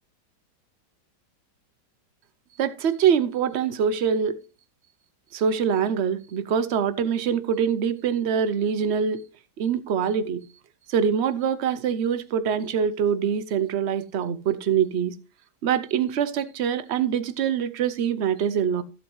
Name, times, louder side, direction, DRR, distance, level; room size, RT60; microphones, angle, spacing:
voice 1, 2.6-4.3 5.3-9.2 9.6-10.4 10.9-15.1 15.6-18.8, right 7 dB, 60° right, 0.7 m, -24 dB
13.5 x 8.1 x 3.1 m
omnidirectional pair, 1.9 m